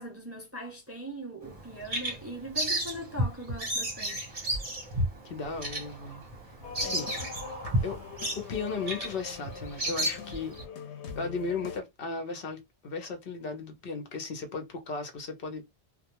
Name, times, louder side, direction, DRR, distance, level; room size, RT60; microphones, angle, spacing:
voice 1, 0.0-4.3 6.8-7.3 7.7-7.9, right 1 dB, 20° right, 0.4 m, -41 dB
Bird vocalization bird call bird song, 1.4-10.7, equal, 35° right, 0.9 m, -33 dB
voice 2, 5.2-6.2 6.8-7.1 7.8-8.0 8.4-10.5 11.2-15.6, left 4 dB, 60° left, 0.9 m, -36 dB
sound 1, 6.6-11.8, left 6 dB, 85° left, 0.9 m, -42 dB
2.3 x 2.2 x 2.9 m
omnidirectional pair, 1.1 m